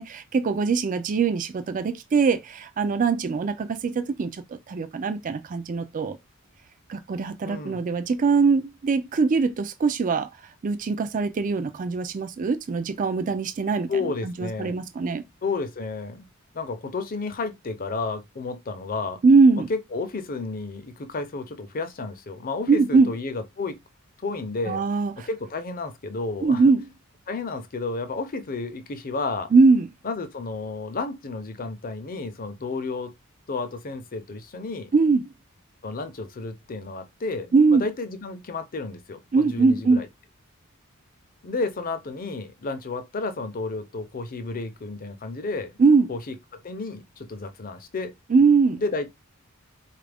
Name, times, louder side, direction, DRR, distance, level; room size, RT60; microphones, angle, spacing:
voice 1, 0.0-6.2 6.9-10.3 10.6-13.9 14.2-15.2 19.2-19.7 22.7-23.1 24.7-25.3 26.4-26.9 29.5-29.9 34.9-35.3 37.5-37.9 39.3-40.0 45.8-46.1 48.3-48.8, right 4 dB, 40° right, 0.4 m, -21 dB
voice 2, 7.4-7.8 13.9-14.9 15.4-16.3 16.5-19.2 19.7-23.8 24.2-24.8 25.2-26.6 27.3-29.5 30.0-33.1 33.5-34.9 35.8-40.1 41.4-45.7 46.1-48.1 48.8-49.1, left 3 dB, 40° left, 0.6 m, -32 dB
4.0 x 2.4 x 3.4 m
head